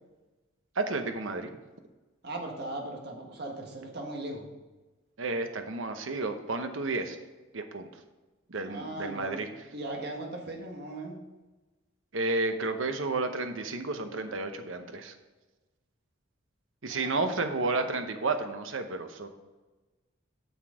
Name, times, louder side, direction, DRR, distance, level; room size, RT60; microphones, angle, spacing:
voice 1, 0.8-1.5 5.2-7.2 7.5-7.9 8.5-9.5 12.1-15.1 16.8-19.3, right 3 dB, 80° right, 7 dB, 0.9 m, -31 dB
voice 2, 2.2-4.5 8.7-11.2 16.9-17.8, right 1 dB, 55° right, 1 dB, 1.6 m, -39 dB
8.0 x 6.1 x 4.9 m, 1.2 s
head